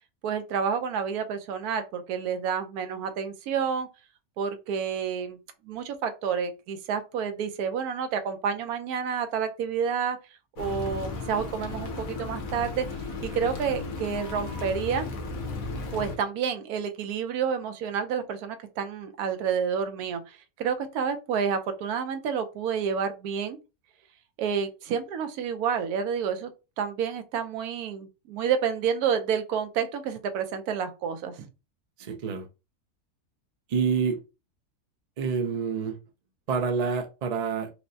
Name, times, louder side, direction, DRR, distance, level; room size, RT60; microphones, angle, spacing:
voice 1, 0.2-3.9 4.4-5.4 5.6-10.2 10.6-12.9 13.2-15.1 15.9-23.6 24.4-26.5 26.8-31.5, right 7 dB, 90° right, 1.1 m, -29 dB
sound 1, 10.6-16.2, left 3 dB, 70° left, 1.2 m, -35 dB
voice 2, 32.0-32.5 33.7-34.2 35.2-36.0 36.5-37.7, right 5 dB, 60° right, 0.4 m, -27 dB
4.4 x 2.0 x 2.6 m
omnidirectional pair, 1.5 m